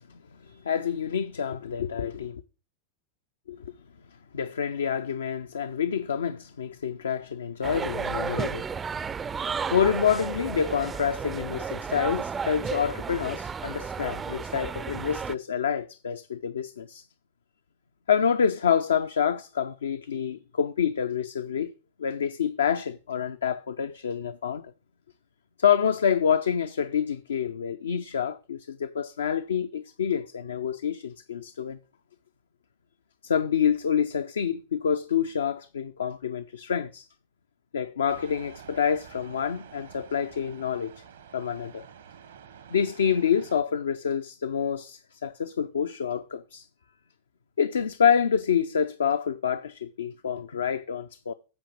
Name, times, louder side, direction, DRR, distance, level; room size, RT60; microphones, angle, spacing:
voice 1, 0.0-2.4 3.5-3.6 4.3-8.6 9.7-17.0 18.1-21.7 22.0-24.7 25.6-31.8 33.2-37.1 37.7-40.9 41.3-41.9 42.7-46.7 47.6-51.3, left 7 dB, 75° left, 0.5 m, -27 dB
sound 1, 7.6-15.4, right 6 dB, 20° right, 0.4 m, -33 dB
sound 2, 38.1-43.6, right 8 dB, 70° right, 1.0 m, -49 dB
8.7 x 5.0 x 7.2 m
figure-of-eight pair, 90°, 0 cm